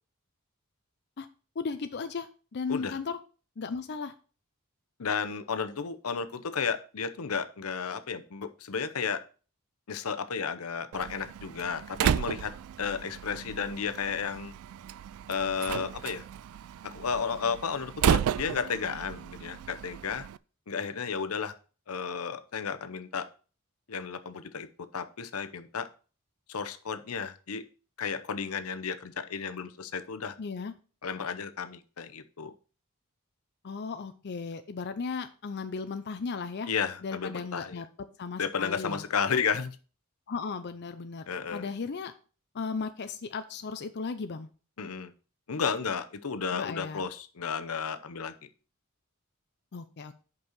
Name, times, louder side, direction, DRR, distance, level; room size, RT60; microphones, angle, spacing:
voice 1, 1.6-3.2 3.6-4.1 30.4-30.7 33.6-36.7 37.0-37.9 38.2-39.0 40.3-41.2 41.5-42.1 42.5-44.5 46.5-47.1 49.7-50.1, left 5 dB, 50° left, 9 dB, 0.5 m, -36 dB
voice 2, 2.7-3.0 5.0-9.2 9.9-12.5 12.8-14.5 15.3-16.3 16.8-20.3 20.7-21.5 21.9-23.3 23.9-25.9 26.5-27.6 28.0-30.4 31.0-32.5 36.7-37.8 38.4-39.8 41.3-41.7 44.8-45.1 45.5-48.5, left 6 dB, 85° left, 10 dB, 0.8 m, -33 dB
Slam, 10.9-20.4, right 9 dB, 75° right, 0.3 m, -33 dB
5.4 x 5.3 x 6.3 m, 0.37 s
head